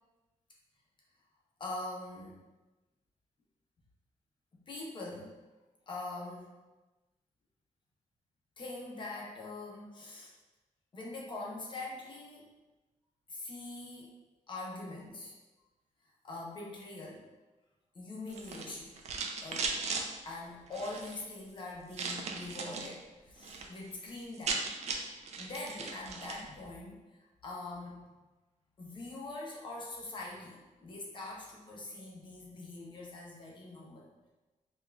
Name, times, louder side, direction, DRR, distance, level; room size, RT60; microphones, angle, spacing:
voice 1, 1.6-2.4 4.5-5.4 5.9-6.5 8.6-10.3 10.9-12.5 13.3-14.1 14.5-15.4 16.2-17.3 17.9-18.9 19.4-19.8 20.2-24.7 25.4-27.0 27.4-28.0 28.8-34.1, left 2 dB, 35° left, -3 dB, 0.7 m, -43 dB
sound 1, 18.3-20.0 20.7-21.2 21.9-22.9 23.3-23.7 23.9-24.0 24.2-26.4, right 4 dB, 55° right, 0.4 m, -37 dB
5.1 x 2.4 x 2.3 m, 1.2 s
wide cardioid pair, 165°, 13 cm